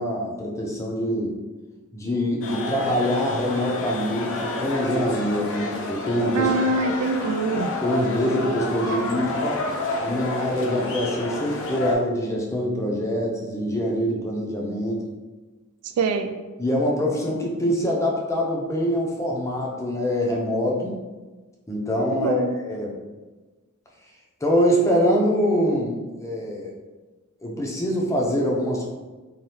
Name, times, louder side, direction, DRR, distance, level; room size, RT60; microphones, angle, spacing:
voice 1, 0.0-1.3 1.9-6.5 7.8-9.6 10.0-15.0 16.6-20.9 21.7-22.9 24.4-26.7 27.4-28.9, equal, 15° left, -2 dB, 0.5 m, -24 dB
sound 1, 2.4-11.9, left 2 dB, 60° left, 0.5 m, -30 dB
voice 2, 6.3-7.7 16.0-16.3 22.1-22.6, right 3 dB, 80° right, 9 dB, 0.3 m, -24 dB
2.7 x 2.3 x 3.3 m, 1.3 s
head